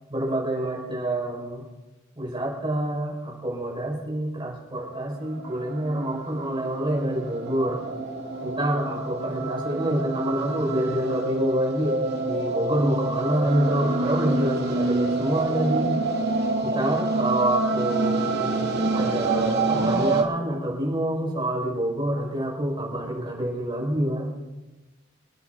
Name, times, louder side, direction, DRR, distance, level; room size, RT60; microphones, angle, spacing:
voice 1, 0.1-1.6 2.2-7.8 8.4-15.9 16.6-18.3 18.9-24.3, right 1 dB, 25° right, -3 dB, 5.7 m, -27 dB
sound 1, 4.7-20.2, right 3 dB, 55° right, 2.4 m, -27 dB
27.5 x 10.0 x 4.1 m, 1.1 s
head